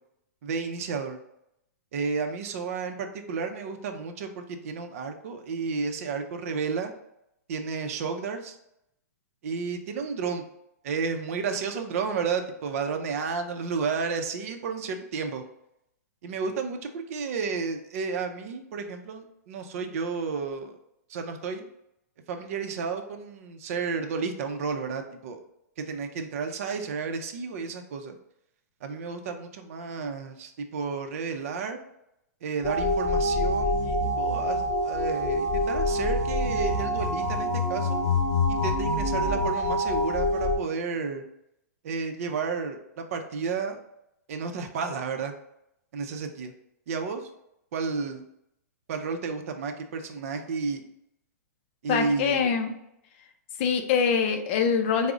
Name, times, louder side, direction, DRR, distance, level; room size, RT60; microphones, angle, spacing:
voice 1, 0.4-1.2 1.9-6.9 7.5-8.6 9.4-10.5 10.8-15.4 16.2-20.8 21.1-21.7 22.3-25.4 25.8-28.2 28.8-31.8 32.4-38.0 38.5-41.3 41.8-43.8 44.3-45.3 45.9-46.5 46.9-47.3 47.7-48.2 48.9-50.8 51.8-52.5, right 5 dB, 55° right, 6 dB, 0.5 m, -32 dB
sound 1, 32.6-40.6, left 1 dB, 10° left, 0.9 m, -26 dB
voice 2, 51.9-52.7 53.6-55.1, left 6 dB, 40° left, 5 dB, 0.4 m, -24 dB
3.7 x 2.0 x 3.5 m, 0.81 s
hypercardioid pair, 140°, 9 cm